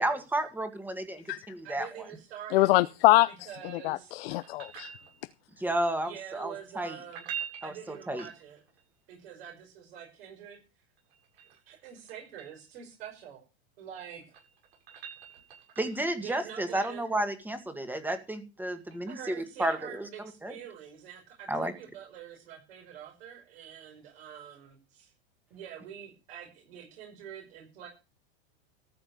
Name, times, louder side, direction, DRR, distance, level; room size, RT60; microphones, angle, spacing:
voice 1, 0.0-1.9 5.6-7.0 7.6-8.3 15.8-20.1 20.4-20.6 21.5-21.7, right 1 dB, 5° right, 1.8 m, -32 dB
voice 2, 1.6-2.7 3.3-4.1 6.0-7.2 7.6-8.6 9.1-10.6 11.3-13.4 13.8-14.3 16.1-17.0 19.0-25.1 25.5-27.9, right 9 dB, 70° right, 5.7 m, -46 dB
voice 3, 2.5-3.5 3.8-4.9, left 18 dB, 65° left, 0.7 m, -24 dB
sound 1, 4.3-5.5 7.0-8.8 11.0-12.6 14.0-16.1 18.9-19.0, right 8 dB, 90° right, 7.8 m, -44 dB
14.0 x 5.9 x 8.4 m
supercardioid pair, 140°, 32 cm